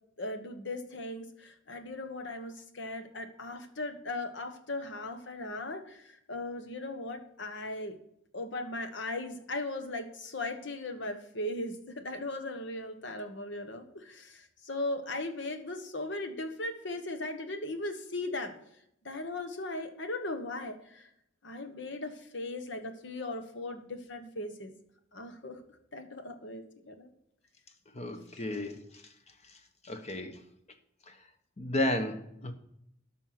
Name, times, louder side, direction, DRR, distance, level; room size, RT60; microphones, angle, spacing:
voice 1, 0.2-8.0 8.3-18.6 19.0-21.1 21.4-24.8 25.1-25.6 25.9-27.1, left 2 dB, 65° left, 8 dB, 1.2 m, -38 dB
voice 2, 27.9-28.9 29.8-30.4 31.1-31.2 31.6-32.5, left 1 dB, 35° left, 7 dB, 1.0 m, -33 dB
12.5 x 5.7 x 5.9 m, 0.76 s
head